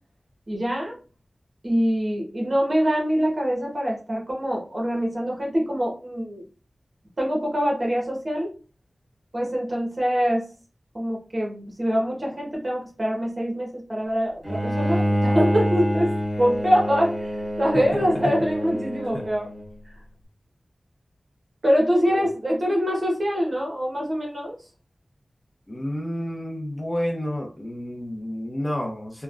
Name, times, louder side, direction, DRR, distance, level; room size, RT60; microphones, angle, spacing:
voice 1, 0.5-1.0 1.6-6.4 7.2-8.5 9.3-10.5 10.9-19.5 21.6-24.5, equal, 45° right, -2 dB, 1.1 m, -24 dB
Bowed string instrument, 14.4-19.7, equal, 25° right, 1.5 m, -26 dB
voice 2, 17.7-18.3 19.1-19.2 22.1-22.3 25.7-29.2, left 1 dB, 25° left, 1 dB, 0.7 m, -30 dB
3.3 x 2.2 x 2.4 m, 0.35 s
wide cardioid pair, 85°, 0 cm